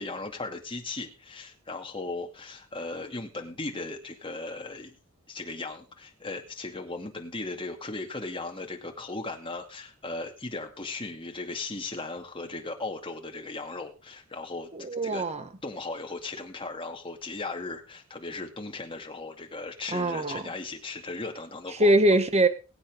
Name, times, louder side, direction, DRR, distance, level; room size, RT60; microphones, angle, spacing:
voice 1, 0.0-5.0 5.3-14.7 15.0-15.2 15.6-21.9, left 3 dB, 25° left, 2.4 m, -37 dB
voice 2, 14.7-15.5 19.9-20.4 21.8-22.5, right 1 dB, 30° right, 1.4 m, -22 dB
22.0 x 8.7 x 3.6 m
head